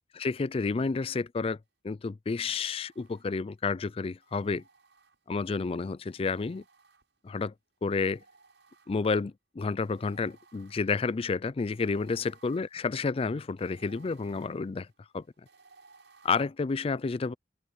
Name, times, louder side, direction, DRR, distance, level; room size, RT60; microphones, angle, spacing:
voice 1, 0.2-1.6 1.8-4.6 5.3-6.6 7.2-7.5 7.8-8.2 8.9-14.9 15.1-15.2 16.2-17.3, left 4 dB, 35° left, 0.4 m, -30 dB
sound 1, 2.3-3.6 4.2-5.5 6.1-7.4 8.0-9.3 9.8-16.4, right 4 dB, 85° right, 7.0 m, -61 dB
open air
head